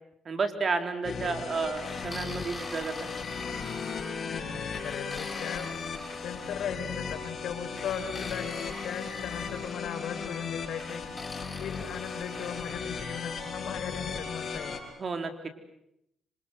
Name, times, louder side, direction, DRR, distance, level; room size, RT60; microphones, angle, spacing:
voice 1, 0.3-3.2 15.0-15.5, right 4 dB, 40° right, 7 dB, 3.9 m, -31 dB
sound 1, 1.0-14.8, left 5 dB, 45° left, 6.1 m, -36 dB
sound 2, 1.8-4.3 4.7-6.7 7.8-9.8 10.8-12.9, left 3 dB, 20° left, 3.2 m, -44 dB
voice 2, 4.1-5.7 6.1-11.0 11.6-14.8, left 8 dB, 80° left, 6 dB, 4.4 m, -38 dB
26.5 x 26.5 x 7.9 m, 0.78 s
cardioid pair, 90°, 0 cm